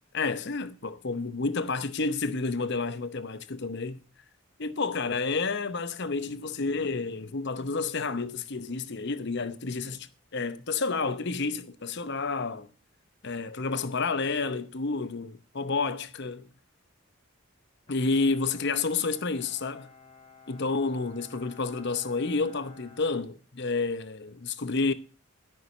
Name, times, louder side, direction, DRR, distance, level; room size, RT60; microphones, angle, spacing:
voice 1, 0.1-4.0 4.6-12.7 13.2-16.5 17.9-19.9 20.5-24.9, left 4 dB, 55° left, 0.8 m, -30 dB
Bowed string instrument, 17.9-24.0, left 4 dB, 25° left, 1.7 m, -55 dB
13.0 x 5.7 x 6.7 m
head